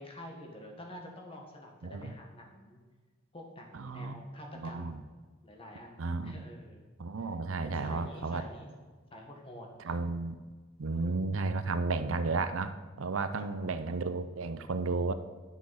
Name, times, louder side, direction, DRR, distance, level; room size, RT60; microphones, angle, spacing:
voice 1, 0.0-2.8 3.3-5.0 5.4-6.8 7.2-7.3 7.6-8.7 9.1-10.0 13.4-13.8, left 1 dB, 25° left, 1 dB, 1.7 m, -48 dB
voice 2, 3.7-4.2 4.5-5.0 6.0-6.4 7.0-8.4 9.8-10.4 10.8-15.1, right 3 dB, 80° right, 11 dB, 0.6 m, -33 dB
11.0 x 6.1 x 5.7 m, 1.4 s
head